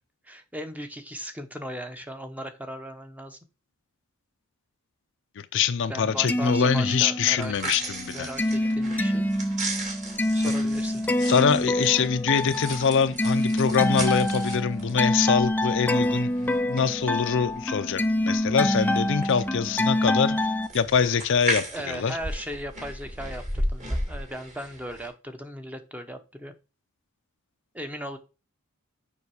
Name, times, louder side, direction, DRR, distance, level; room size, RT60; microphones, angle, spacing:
voice 1, 0.2-3.4 5.9-7.7 8.1-9.3 10.3-11.3 21.7-26.5 27.7-28.2, equal, 5° right, 0.8 m, -37 dB
voice 2, 5.4-8.3 11.2-20.5 20.7-22.2, left 6 dB, 60° left, 0.5 m, -24 dB
sound 1, 6.1-7.5 7.8-20.7, left 1 dB, 10° left, 0.4 m, -26 dB
sound 2, 7.2-25.1, right 1 dB, 35° right, 2.3 m, -36 dB
7.1 x 5.4 x 4.8 m
head